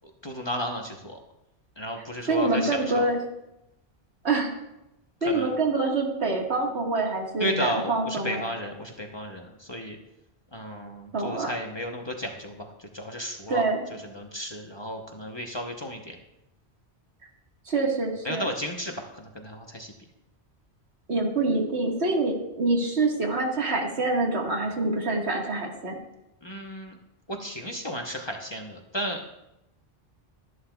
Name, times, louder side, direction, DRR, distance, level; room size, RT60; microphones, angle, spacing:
voice 1, 0.2-1.2 1.8-3.1 5.2-5.5 7.4-10.0 10.5-12.7 12.9-13.6 14.1-16.2 18.2-19.9 26.4-27.0 27.4-29.4, equal, 25° left, 2 dB, 0.9 m, -33 dB
voice 2, 2.3-3.2 4.2-4.5 5.2-8.4 11.1-11.5 13.5-13.8 17.7-18.5 21.1-26.0, right 3 dB, 75° right, 0 dB, 2.0 m, -26 dB
13.0 x 11.0 x 2.3 m, 0.88 s
omnidirectional pair, 1.1 m